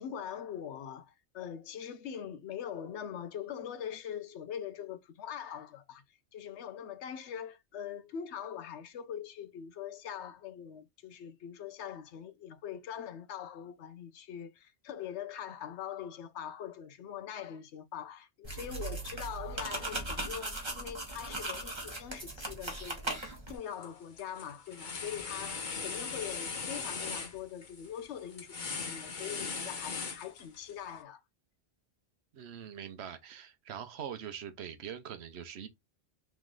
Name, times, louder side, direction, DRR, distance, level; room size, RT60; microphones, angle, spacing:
voice 1, 0.0-6.0 6.3-31.2, left 9 dB, 85° left, 0.9 m, -42 dB
sound 1, 18.4-23.6, right 2 dB, 25° right, 1.3 m, -38 dB
sound 2, 23.5-23.9 24.2-30.7, left 5 dB, 50° left, 1.0 m, -39 dB
voice 2, 32.3-35.7, right 8 dB, 75° right, 1.0 m, -43 dB
3.5 x 3.2 x 3.6 m
omnidirectional pair, 1.1 m